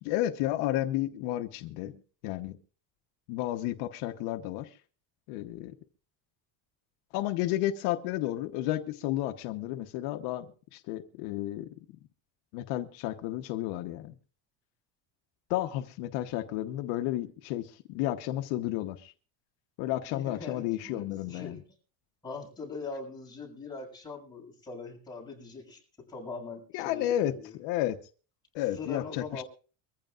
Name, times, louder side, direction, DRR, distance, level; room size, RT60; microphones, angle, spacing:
voice 1, 0.0-2.6 3.3-4.8 5.3-5.7 7.1-11.7 12.5-14.1 15.5-19.1 19.8-21.6 26.7-28.0 28.5-29.4, left 14 dB, 75° left, 7 dB, 1.2 m, -32 dB
voice 2, 20.1-21.6 22.2-27.5 28.6-29.4, left 4 dB, 10° left, -2 dB, 6.8 m, -42 dB
23.5 x 15.0 x 2.5 m, 0.39 s
cardioid pair, 155°, 43 cm